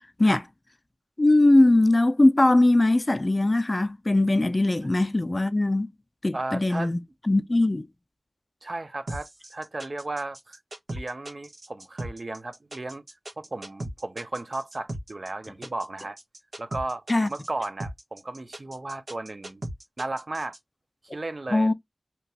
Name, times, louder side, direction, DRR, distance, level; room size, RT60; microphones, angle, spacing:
voice 1, 1.2-5.9 6.2-7.9 17.1-17.3 21.5-21.7, left 2 dB, 35° left, 0.3 m, -20 dB
voice 2, 6.3-6.9 8.6-10.6 10.9-13.0 13.4-16.2 16.6-17.0 17.3-19.6 20.0-20.6 21.1-21.7, right 2 dB, 55° right, 0.5 m, -34 dB
sound 1, 9.1-20.6, right 1 dB, 75° right, 1.2 m, -37 dB
2.9 x 2.3 x 2.7 m
wide cardioid pair, 60°, 0 cm